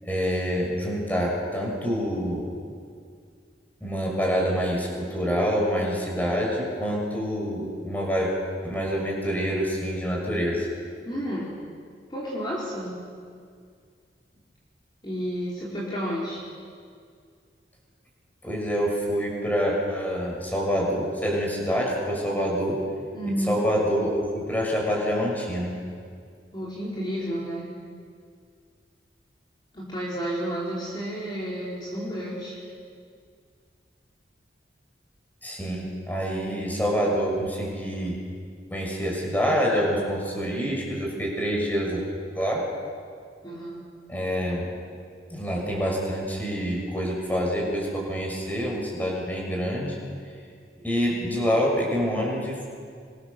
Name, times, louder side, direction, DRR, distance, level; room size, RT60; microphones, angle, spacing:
voice 1, 0.0-2.5 3.8-8.3 8.6-10.7 18.4-22.8 23.3-25.7 35.4-38.2 38.7-42.0 42.3-42.6 44.1-44.7 45.3-50.1 50.8-52.6, equal, 10° left, -2 dB, 6.5 m, -26 dB
voice 2, 11.0-11.5 12.1-12.9 15.0-16.4 23.1-23.7 26.5-27.7 29.7-32.6 43.4-43.8, equal, 25° left, -7 dB, 4.8 m, -31 dB
26.0 x 24.5 x 7.1 m, 2.2 s
head